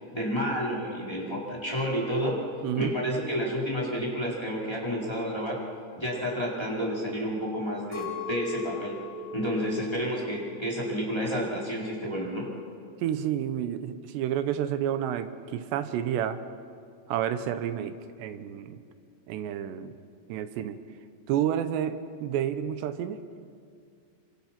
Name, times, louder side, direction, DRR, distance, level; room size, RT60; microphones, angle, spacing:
voice 1, 0.1-2.4 2.8-5.6 6.0-9.0 9.3-12.5, equal, 5° left, -4 dB, 3.6 m, -30 dB
voice 2, 2.6-3.0 13.0-16.4 17.1-18.8 19.3-20.0 20.3-20.8 21.3-23.2, right 10 dB, 75° right, 11 dB, 2.8 m, -30 dB
Chink clink, 7.9-12.3 12.5-13.3, left 4 dB, 35° left, 6.5 m, -40 dB
26.0 x 25.5 x 6.0 m, 2.3 s
omnidirectional pair, 5.5 m